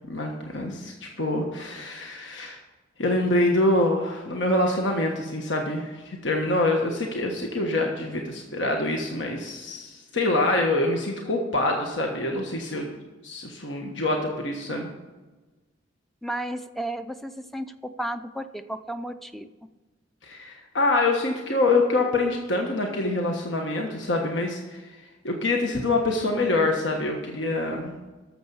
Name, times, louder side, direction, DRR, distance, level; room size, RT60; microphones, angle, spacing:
voice 1, 0.1-2.6 3.0-12.9 13.2-14.9 20.2-25.0 25.2-27.9, left 2 dB, 70° left, 1 dB, 1.3 m, -25 dB
voice 2, 16.2-19.5, right 1 dB, ahead, 10 dB, 0.4 m, -33 dB
12.5 x 7.0 x 5.5 m, 1.2 s
head